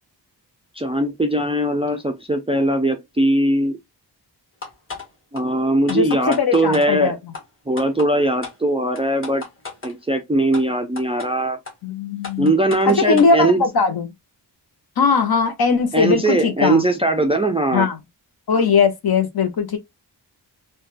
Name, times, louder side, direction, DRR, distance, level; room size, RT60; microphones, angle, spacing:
voice 1, 0.8-3.8 5.3-7.2 7.7-9.4 9.8-11.6 12.4-13.6 15.9-17.9, right 1 dB, 15° right, 0.3 m, -20 dB
sound 1, 4.6-5.1 5.3-5.4 5.9-6.9 7.3-7.4 7.8-8.1 8.4-8.6 9.0-9.9 10.5-10.6 11.0-11.3 11.7-11.8 12.2-13.3, left 4 dB, 30° left, 1.3 m, -33 dB
voice 2, 5.9-7.2 11.8-12.5 12.8-14.1 15.0-16.8 17.7-18.0 18.5-19.8, left 5 dB, 60° left, 0.7 m, -19 dB
3.4 x 2.2 x 2.4 m
wide cardioid pair, 175°, 41 cm